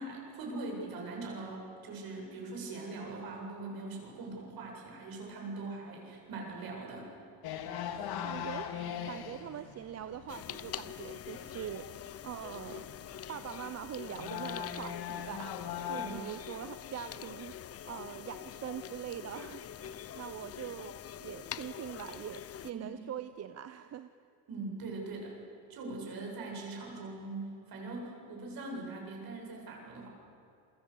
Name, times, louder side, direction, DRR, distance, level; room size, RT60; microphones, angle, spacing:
voice 1, 0.0-7.1 15.9-16.3 22.7-23.1 24.5-25.3 25.7-30.1, right 3 dB, 50° right, 0 dB, 7.9 m, -41 dB
sound 1, 7.4-16.1, left 9 dB, 55° left, 2.3 m, -41 dB
voice 2, 8.2-8.7 9.1-11.9 12.2-12.9 13.3-17.5 17.8-20.9 21.2-24.1, right 10 dB, 35° right, 11 dB, 0.7 m, -43 dB
sound 2, 10.3-22.7, left 10 dB, 30° left, 0.8 m, -45 dB
28.5 x 22.5 x 8.4 m, 2.6 s
cardioid pair, 135°, 46 cm